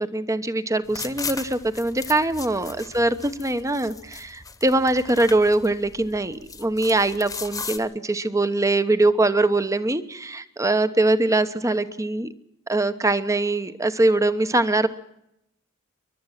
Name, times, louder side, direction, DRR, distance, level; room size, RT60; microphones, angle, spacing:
voice 1, 0.0-12.3 12.7-14.9, right 2 dB, 15° right, 11 dB, 1.0 m, -22 dB
sound 1, 0.9-7.8, left 5 dB, 15° left, 1.3 m, -37 dB
29.5 x 12.0 x 7.3 m, 0.81 s
head